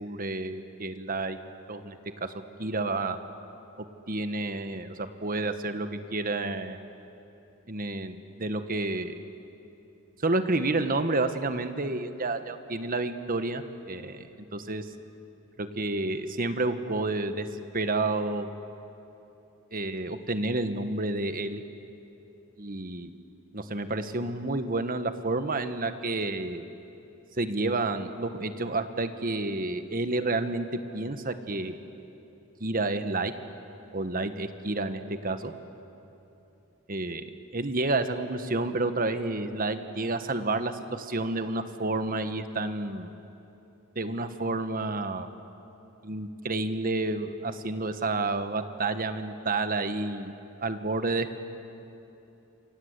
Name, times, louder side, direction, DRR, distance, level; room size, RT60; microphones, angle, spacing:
voice 1, 0.0-1.4 1.7-2.3 2.6-3.2 4.1-6.8 7.7-9.2 10.2-14.9 15.6-17.5 17.7-18.5 19.7-21.6 22.6-23.2 23.5-26.6 27.4-30.7 30.9-31.7 32.6-33.3 33.9-35.5 36.9-37.2 37.5-43.1 43.9-45.3 46.0-50.3 50.6-51.4, right 2 dB, 40° right, 9 dB, 1.3 m, -30 dB
28.0 x 25.0 x 8.2 m, 3.0 s
head